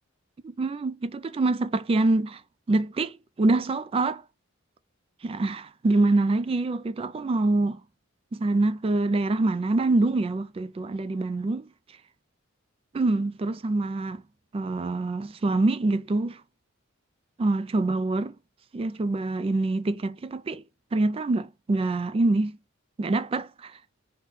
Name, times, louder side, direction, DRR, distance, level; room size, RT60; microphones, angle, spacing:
voice 1, 0.4-2.4 2.7-4.2 5.2-7.8 8.3-11.7 12.9-14.2 14.5-16.4 17.4-18.3 18.7-20.6 20.9-22.6 23.0-23.8, right 2 dB, 30° right, 0.3 m, -25 dB
3.8 x 2.2 x 3.5 m
head